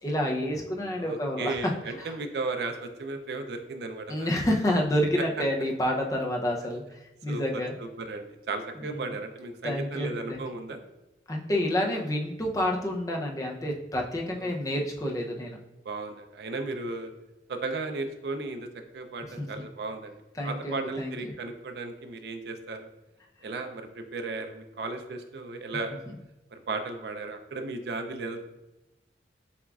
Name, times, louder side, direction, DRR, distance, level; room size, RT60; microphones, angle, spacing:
voice 1, 0.0-1.7 2.0-2.2 4.1-7.7 8.7-9.1 9.6-10.4 11.3-15.6 19.2-19.7 20.3-21.3 26.1-26.2, left 1 dB, 20° left, 0 dB, 0.5 m, -29 dB
voice 2, 1.0-4.3 7.3-7.6 8.0-10.8 14.4-14.5 15.9-17.1 17.5-18.7 18.9-20.1 20.4-22.9 23.4-25.9 26.5-28.4, right 3 dB, 65° right, 6 dB, 0.4 m, -35 dB
7.0 x 2.3 x 2.3 m, 0.98 s
head